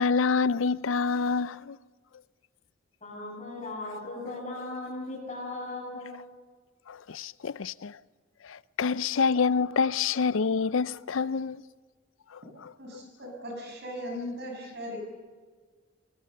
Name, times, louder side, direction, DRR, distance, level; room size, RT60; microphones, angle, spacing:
voice 1, 0.0-1.8 6.9-8.0 8.4-11.6 12.6-13.0, left 5 dB, 75° left, 0.5 m, -27 dB
voice 2, 3.0-6.1, left 2 dB, 35° left, 7.0 m, -37 dB
voice 3, 12.8-15.0, equal, 55° right, 6.6 m, -38 dB
21.5 x 21.0 x 6.6 m
head